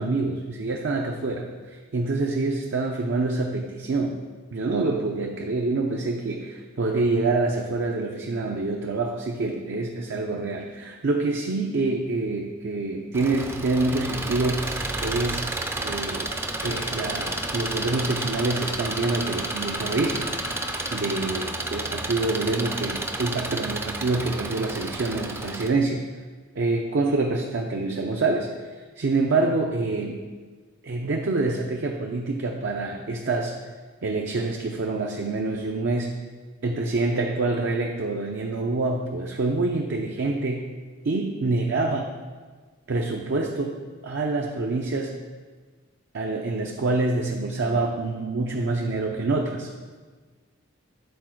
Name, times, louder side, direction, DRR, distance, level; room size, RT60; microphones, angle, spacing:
voice 1, 0.0-4.1 4.5-15.5 15.8-16.3 16.6-20.3 20.9-26.0 26.6-28.7 29.0-30.2 30.8-33.6 34.0-36.1 36.6-40.7 41.0-42.1 42.9-43.8 44.0-45.2 46.1-49.9, right 3 dB, 65° right, 1 dB, 0.5 m, -26 dB
Engine, 13.1-25.7, right 2 dB, 10° right, 0.4 m, -31 dB
sound 1, 16.6-22.2, left 3 dB, 70° left, 0.7 m, -40 dB
8.4 x 4.1 x 4.5 m, 1.4 s
head